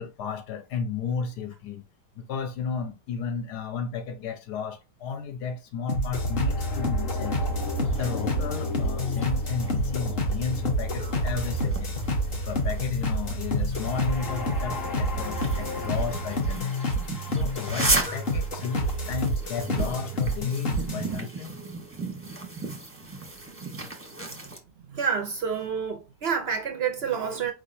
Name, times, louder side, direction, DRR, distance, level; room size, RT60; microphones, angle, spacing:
voice 1, 0.0-1.8 2.2-7.4 7.8-12.0 12.5-16.8 17.3-21.6, left 6 dB, 75° left, 1.3 m, -33 dB
sound 1, 5.9-21.1, equal, 40° left, 1.1 m, -29 dB
sound 2, 6.1-16.4, left 1 dB, 25° left, 0.4 m, -34 dB
sound 3, 7.1-24.6, right 2 dB, 10° right, 0.7 m, -36 dB
voice 2, 24.8-27.5, right 6 dB, 70° right, 0.6 m, -28 dB
4.6 x 3.8 x 2.6 m
omnidirectional pair, 1.8 m